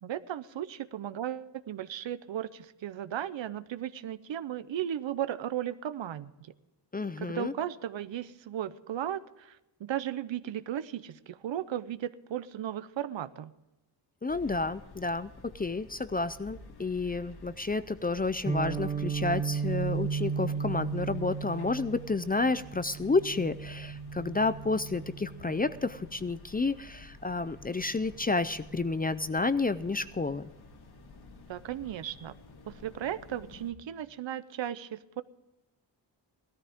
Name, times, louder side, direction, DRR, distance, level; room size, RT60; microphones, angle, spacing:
voice 1, 0.0-6.5 7.2-13.5 31.5-32.3 32.7-35.2, right 11 dB, 80° right, 14 dB, 0.7 m, -36 dB
voice 2, 6.9-7.5 14.2-30.5, left 3 dB, 20° left, 14 dB, 0.4 m, -30 dB
sound 1, 14.3-33.7, left 2 dB, 60° left, 1.8 m, -52 dB
Guitar, 18.5-26.3, right 6 dB, 15° right, 0.6 m, -35 dB
18.0 x 13.5 x 3.6 m, 0.99 s
wide cardioid pair, 170°, 44 cm